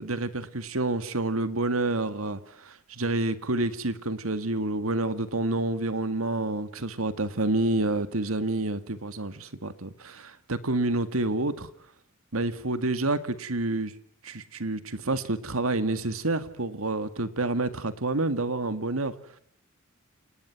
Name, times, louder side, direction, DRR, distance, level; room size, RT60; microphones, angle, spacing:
voice 1, 0.0-11.7 12.3-13.9 14.2-19.1, right 2 dB, 80° right, 1.9 m, -28 dB
28.5 x 19.5 x 6.0 m
head